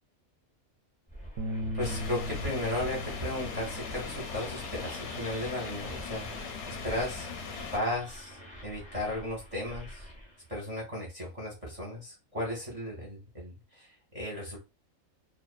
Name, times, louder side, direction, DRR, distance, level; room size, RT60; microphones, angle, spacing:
sound 1, 1.1-10.5, equal, 10° left, 0.6 m, -45 dB
Bass guitar, 1.4-5.8 6.2-7.6, left 1 dB, 65° right, 0.7 m, -40 dB
voice 1, 1.7-6.3 6.7-7.3 7.7-8.4 8.6-10.1 10.5-14.6, left 1 dB, 35° right, -2 dB, 0.7 m, -35 dB
sound 2, 1.8-7.8, left 5 dB, 65° left, 0.8 m, -40 dB
2.5 x 2.3 x 2.3 m, 0.28 s
omnidirectional pair, 1.3 m